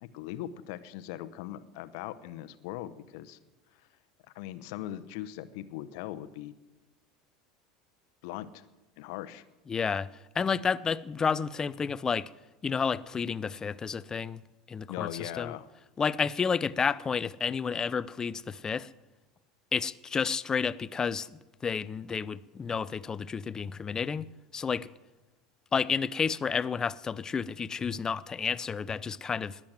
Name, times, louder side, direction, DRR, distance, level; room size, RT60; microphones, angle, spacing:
voice 1, 0.0-3.4 4.3-6.5 8.2-8.6 9.0-9.4 14.9-15.7, left 13 dB, 55° left, 0.9 m, -40 dB
voice 2, 9.7-10.1 10.3-12.3 12.6-14.4 14.7-15.5 16.0-18.9 19.7-24.3 24.5-24.9 25.7-29.6, left 6 dB, 25° left, 0.5 m, -31 dB
20.0 x 7.5 x 7.8 m
figure-of-eight pair, 75°, 3 cm